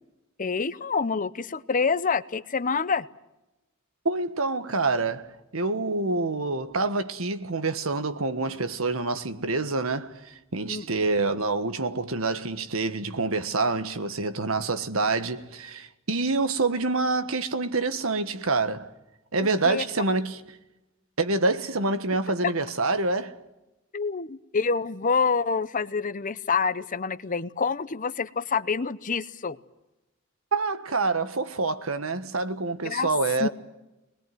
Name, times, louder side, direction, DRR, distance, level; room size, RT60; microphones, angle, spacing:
voice 1, 0.4-3.0 10.7-10.8 19.4-19.8 23.9-29.6 32.8-33.1 33.4-33.5, left 5 dB, 40° left, 0.8 m, -27 dB
voice 2, 4.0-18.9 19.3-20.4 21.2-23.4 30.5-33.5, right 3 dB, 85° right, 1.5 m, -27 dB
24.0 x 20.5 x 9.4 m
head